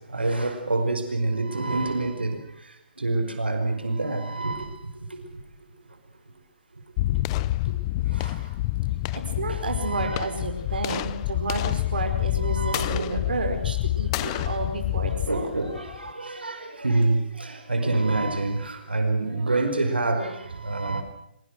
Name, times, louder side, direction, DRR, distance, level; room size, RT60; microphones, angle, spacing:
voice 1, 0.1-2.4 3.0-4.7 8.2-8.3 9.5-10.3 12.5-13.2 14.2-14.5 15.0-20.4 20.6-21.0, right 2 dB, 90° right, 6 dB, 5.2 m, -27 dB
sound 1, 7.0-16.1, left 16 dB, 30° left, 0.8 m, -28 dB
voice 2, 9.1-15.5, right 3 dB, 65° right, 4 dB, 5.0 m, -31 dB
24.5 x 22.5 x 6.4 m, 0.75 s
figure-of-eight pair, 140°, 5 cm